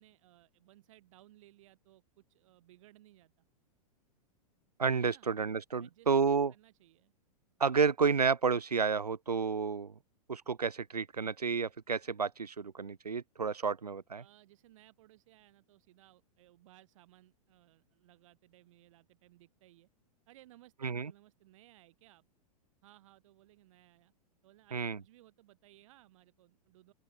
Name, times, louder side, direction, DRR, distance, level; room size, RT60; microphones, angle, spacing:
voice 1, 0.0-3.4 5.0-5.3 5.8-7.1 14.2-19.9 20.3-22.2 22.8-24.1 24.4-26.9, right 16 dB, 55° right, 6.4 m, -62 dB
voice 2, 4.8-6.5 7.6-9.9 10.3-14.2 20.8-21.1 24.7-25.0, right 5 dB, 85° right, 1.0 m, -31 dB
open air
figure-of-eight pair, 105°, 20 cm